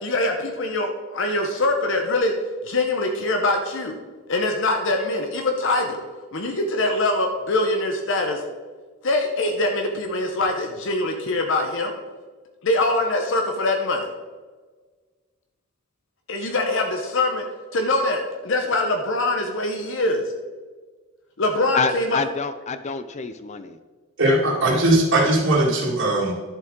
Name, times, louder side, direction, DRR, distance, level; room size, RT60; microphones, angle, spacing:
voice 1, 0.0-2.3 2.6-4.0 4.3-6.0 6.3-8.4 9.0-11.9 12.6-14.1 16.3-17.4 17.7-20.2 21.4-22.2, left 2 dB, 60° left, 3 dB, 1.0 m, -23 dB
voice 2, 21.7-23.8, left 5 dB, 35° left, 11 dB, 0.4 m, -27 dB
voice 3, 24.2-26.3, right 1 dB, 60° right, -8 dB, 2.0 m, -19 dB
11.5 x 7.5 x 3.8 m, 1.4 s
head